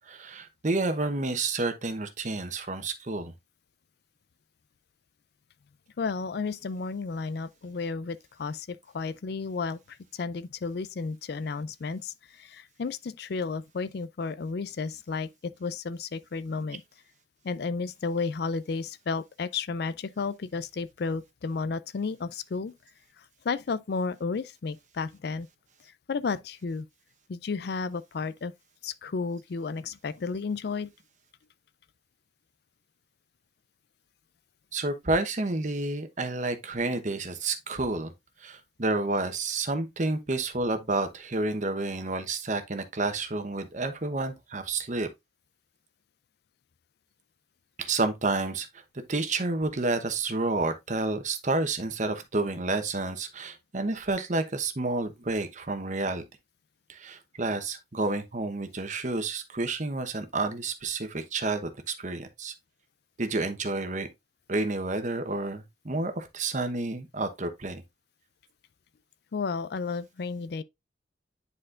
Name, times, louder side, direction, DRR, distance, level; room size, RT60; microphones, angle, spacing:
voice 1, 0.1-3.3 34.7-38.1 38.4-45.1 47.8-48.7 49.1-56.2 56.9-62.5 63.2-64.1 64.5-67.8, right 2 dB, 40° right, 1.0 m, -30 dB
voice 2, 6.0-16.8 17.4-22.7 23.2-25.5 26.1-26.9 27.3-28.5 28.8-30.9 69.3-70.6, left 4 dB, 60° left, 0.4 m, -32 dB
9.9 x 4.3 x 2.5 m
head